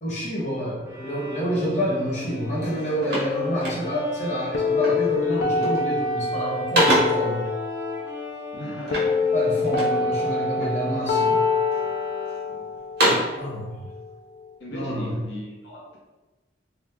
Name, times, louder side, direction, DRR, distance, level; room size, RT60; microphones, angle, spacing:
voice 1, 0.0-7.5 9.3-11.5 13.3-13.9 14.7-15.2, equal, 40° left, -6 dB, 0.9 m, -28 dB
Bowed string instrument, 0.8-12.7, left 4 dB, 15° right, 0.5 m, -37 dB
sound 1, 2.2-2.3 2.6-4.2 4.8-5.1 5.5-6.0 6.3-7.3 8.8-10.0 10.6-11.2 11.7-12.4 12.7-13.4, right 1 dB, 60° right, 1.2 m, -26 dB
sound 2, 4.5-14.5, left 4 dB, 60° left, 0.4 m, -26 dB
voice 2, 8.5-9.1 9.9-10.2 12.5-12.7 14.6-16.0, equal, 75° left, -4 dB, 0.7 m, -38 dB
2.8 x 2.3 x 3.5 m, 1.1 s
head